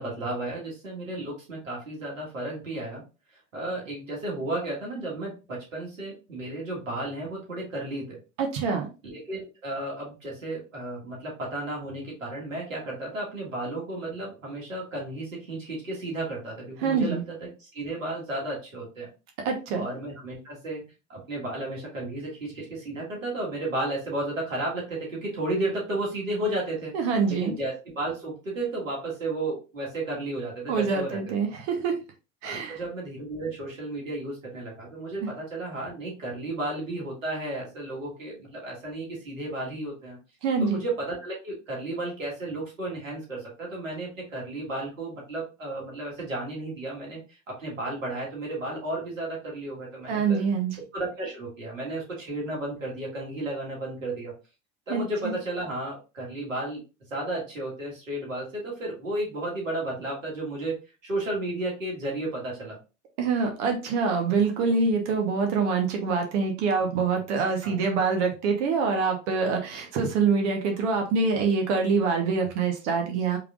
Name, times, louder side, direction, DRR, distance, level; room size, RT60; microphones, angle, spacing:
voice 1, 0.0-3.0 3.5-8.2 9.0-19.1 19.7-20.8 21.1-26.9 27.3-31.2 32.4-40.2 40.6-50.4 50.9-54.3 54.9-56.8 57.1-60.8 61.0-62.8 67.6-67.8, right 2 dB, 85° right, -3 dB, 1.7 m, -33 dB
voice 2, 8.4-8.9 16.8-17.2 19.4-19.8 26.9-27.5 30.7-31.9 32.4-32.8 40.4-40.8 50.1-50.8 54.9-55.0 63.2-73.4, right 5 dB, 60° right, 3 dB, 1.0 m, -25 dB
4.9 x 3.2 x 2.4 m, 0.31 s
figure-of-eight pair, 70°, 39 cm